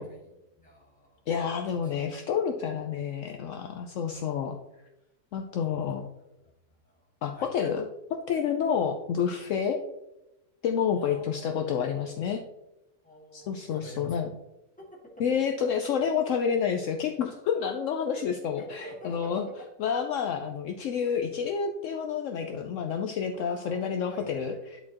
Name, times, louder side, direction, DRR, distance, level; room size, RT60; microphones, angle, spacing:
voice 1, 0.0-1.3 1.6-2.0 4.0-4.6 5.7-5.9 6.4-7.5 10.9-11.6 13.0-14.2 14.8-15.0 15.3-15.7 15.9-16.2 17.5-17.8 18.1-18.2 18.6-19.5 23.4-24.4, equal, 5° left, -4 dB, 1.8 m, -48 dB
voice 2, 1.3-4.6 5.3-6.0 7.2-9.8 10.6-12.4 13.3-14.3 15.2-19.5 19.8-24.8, left 7 dB, 70° left, 4 dB, 0.9 m, -29 dB
10.5 x 4.3 x 2.9 m, 0.92 s
omnidirectional pair, 1.5 m